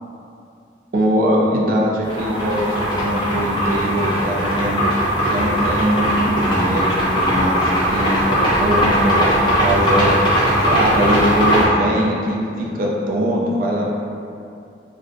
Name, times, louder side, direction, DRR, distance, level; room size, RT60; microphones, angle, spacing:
voice 1, 0.9-4.8 5.2-7.5 7.8-10.1 10.6-13.9, equal, 50° right, -3 dB, 0.3 m, -21 dB
sound 1, 2.0-11.6, equal, 25° left, 0.5 m, -19 dB
2.5 x 2.0 x 2.5 m, 2.5 s
head